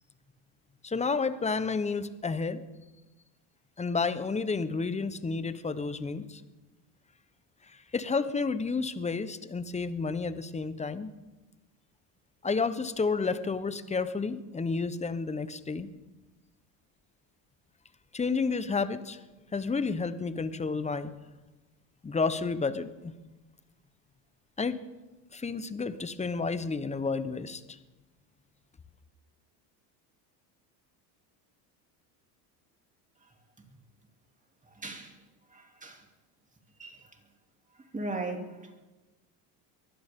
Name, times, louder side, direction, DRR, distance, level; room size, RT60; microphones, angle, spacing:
voice 1, 0.8-2.6 3.8-6.4 7.9-11.1 12.4-15.9 18.1-19.2 19.5-21.1 22.0-23.1 24.6-24.8 25.3-27.8, left 4 dB, 15° left, 13 dB, 1.0 m, -31 dB
voice 2, 34.7-35.2 35.5-36.0 36.8-37.2 37.8-38.8, right 2 dB, 15° right, 2 dB, 3.0 m, -38 dB
23.0 x 16.0 x 3.8 m, 1.1 s
supercardioid pair, 100°, 46 cm